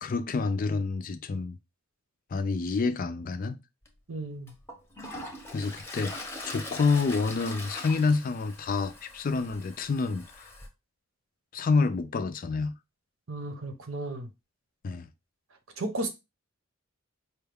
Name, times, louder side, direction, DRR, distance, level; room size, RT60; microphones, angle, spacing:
voice 1, 0.0-1.6 2.3-3.6 5.5-10.5 11.5-12.7 14.8-15.1, left 4 dB, 40° left, 0.4 m, -28 dB
Toilet flush, 3.8-3.9 4.5-10.7, left 1 dB, 10° left, 0.7 m, -42 dB
voice 2, 4.1-4.5 13.3-14.3 15.8-16.1, right 2 dB, 85° right, 0.9 m, -34 dB
4.5 x 2.3 x 3.4 m
head